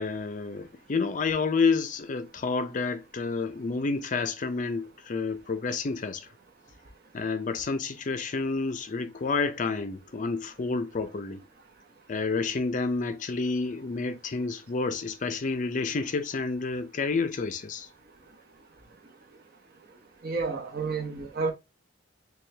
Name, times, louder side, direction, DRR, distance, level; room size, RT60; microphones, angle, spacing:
voice 1, 0.0-6.3 7.1-11.4 12.1-17.9, left 4 dB, 40° left, 0.4 m, -29 dB
voice 2, 20.2-21.5, right 4 dB, 50° right, 0.9 m, -30 dB
4.4 x 2.3 x 3.2 m
head